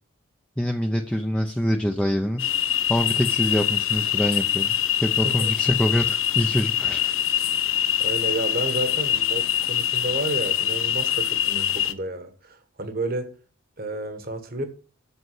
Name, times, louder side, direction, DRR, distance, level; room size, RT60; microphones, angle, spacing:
voice 1, 0.6-2.5 2.9-4.7 5.0-7.1, equal, 5° left, 3 dB, 0.6 m, -25 dB
sound 1, 2.4-11.9, left 11 dB, 75° left, 0.8 m, -24 dB
voice 2, 7.7-13.3 13.8-14.6, right 2 dB, 45° right, 8 dB, 1.3 m, -31 dB
8.1 x 6.7 x 7.6 m, 0.39 s
head